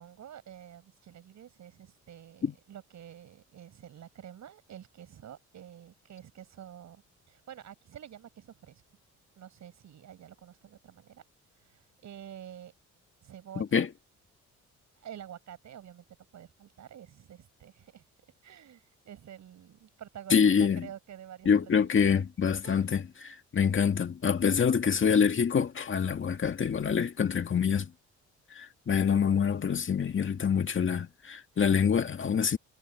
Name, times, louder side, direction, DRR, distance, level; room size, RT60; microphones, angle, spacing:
voice 1, 0.0-8.8 9.4-11.3 11.5-12.7 13.2-13.9 15.0-16.0 16.3-18.0 18.4-22.2 22.6-22.9 23.1-23.3, right 10 dB, 65° right, 7.3 m, -49 dB
voice 2, 13.6-13.9 20.3-20.9 21.5-27.9 28.6-32.6, left 7 dB, 40° left, 2.0 m, -26 dB
cardioid pair, 90°, 30 cm